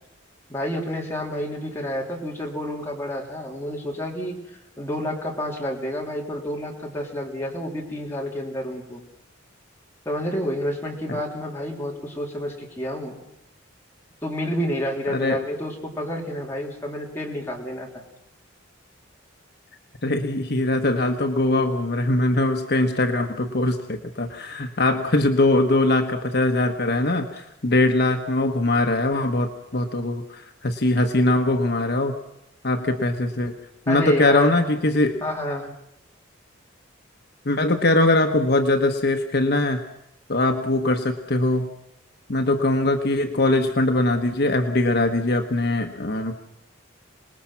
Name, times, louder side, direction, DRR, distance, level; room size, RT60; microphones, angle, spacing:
voice 1, 0.5-4.4 4.8-9.0 10.1-13.2 14.2-18.0 33.9-34.6 35.2-35.7, equal, 15° left, -2 dB, 3.7 m, -29 dB
voice 2, 20.0-32.1 32.6-33.5 33.9-35.2 37.4-39.8 40.3-41.7 42.3-46.3, left 2 dB, 55° left, 4 dB, 1.2 m, -21 dB
26.5 x 20.0 x 5.9 m, 0.80 s
head